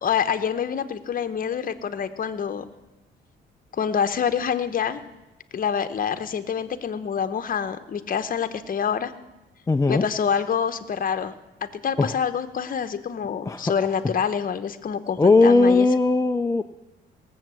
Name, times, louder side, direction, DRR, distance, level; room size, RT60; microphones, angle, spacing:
voice 1, 0.0-2.6 3.7-5.0 5.5-9.1 9.9-11.3 11.6-15.9, left 7 dB, 45° left, 10 dB, 1.0 m, -26 dB
voice 2, 9.7-10.1 12.0-12.1 13.5-13.6 15.2-16.6, left 3 dB, 15° left, 6 dB, 0.5 m, -18 dB
18.5 x 7.4 x 7.7 m, 1.0 s
cardioid pair, 90°, 20 cm